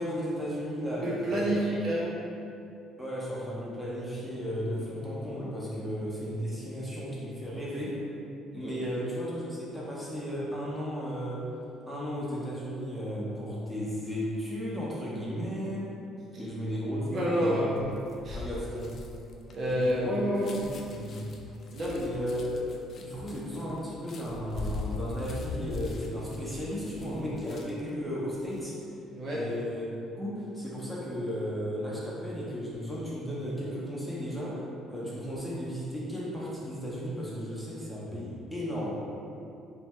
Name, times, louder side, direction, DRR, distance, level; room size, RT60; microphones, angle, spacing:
voice 1, 0.0-1.7 3.0-8.0 8.5-11.5 11.9-15.9 16.4-17.8 18.3-19.0 19.7-20.1 20.5-21.2 22.0-22.6 23.0-28.8 29.3-34.6 34.9-38.9, equal, ahead, -7 dB, 0.8 m, -35 dB
voice 2, 1.0-2.2 8.6-8.9 17.1-17.8 18.2-18.4 19.5-20.6 21.7-22.0 29.1-29.4, equal, 50° right, -6 dB, 0.5 m, -29 dB
sound 1, 17.8-27.9 28.3-28.6, left 3 dB, 50° left, 0.3 m, -41 dB
2.6 x 2.2 x 3.1 m, 2.7 s
supercardioid pair, 80°, 0 cm